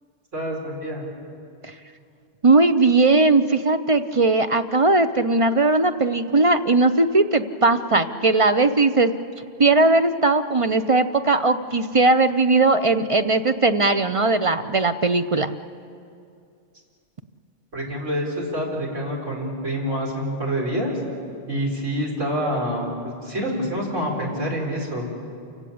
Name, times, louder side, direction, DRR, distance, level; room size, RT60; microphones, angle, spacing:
voice 1, 0.3-1.0 17.7-20.9 21.5-25.1, equal, 80° right, -2 dB, 4.9 m, -27 dB
voice 2, 2.4-9.1 9.6-15.5, right 3 dB, 35° right, 10 dB, 0.6 m, -18 dB
28.5 x 16.5 x 8.6 m, 2.4 s
omnidirectional pair, 1.3 m